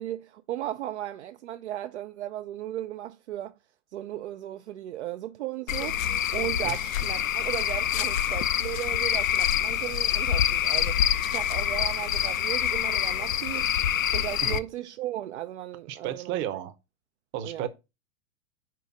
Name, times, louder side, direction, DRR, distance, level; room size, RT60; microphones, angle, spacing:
voice 1, 0.0-3.6 3.9-13.7 14.1-16.3 17.4-17.7, right 13 dB, 55° right, 0.5 m, -36 dB
Cricket / Frog, 5.7-14.6, left 10 dB, 70° left, 0.6 m, -26 dB
voice 2, 15.9-16.7 17.3-17.7, right 10 dB, 30° right, 0.8 m, -32 dB
4.7 x 4.5 x 5.9 m
figure-of-eight pair, 100°, 42 cm